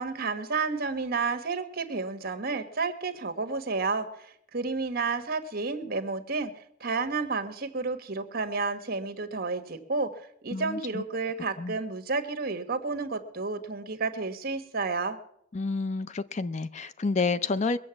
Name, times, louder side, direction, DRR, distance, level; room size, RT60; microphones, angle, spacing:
voice 1, 0.0-6.5 6.8-15.2, right 4 dB, 50° right, 8 dB, 1.3 m, -31 dB
voice 2, 10.5-11.0 11.6-11.8 15.5-17.8, left 3 dB, 35° left, 14 dB, 0.5 m, -29 dB
22.0 x 7.6 x 7.0 m, 0.71 s
head